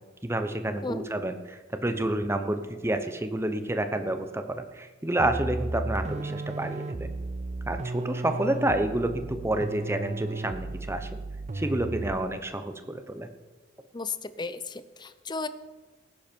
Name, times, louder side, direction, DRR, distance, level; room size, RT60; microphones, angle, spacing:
voice 1, 0.2-7.1 7.7-11.1 11.5-13.3, right 1 dB, 15° right, 8 dB, 0.9 m, -29 dB
sound 1, 5.2-12.3, right 2 dB, 35° right, 0.5 m, -34 dB
voice 2, 13.9-15.5, left 3 dB, 20° left, 13 dB, 0.6 m, -34 dB
18.5 x 10.5 x 4.6 m, 1.3 s
head